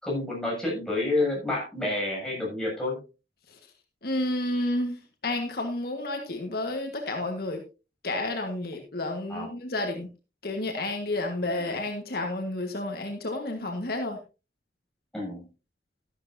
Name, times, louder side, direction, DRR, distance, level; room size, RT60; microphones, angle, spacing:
voice 1, 0.0-3.0 9.3-9.5 15.1-15.5, left 2 dB, 5° left, -5 dB, 7.6 m, -29 dB
voice 2, 4.0-7.6 8.0-10.1 10.4-14.2, left 2 dB, 60° left, 3 dB, 1.6 m, -31 dB
13.0 x 12.0 x 2.7 m, 0.31 s
head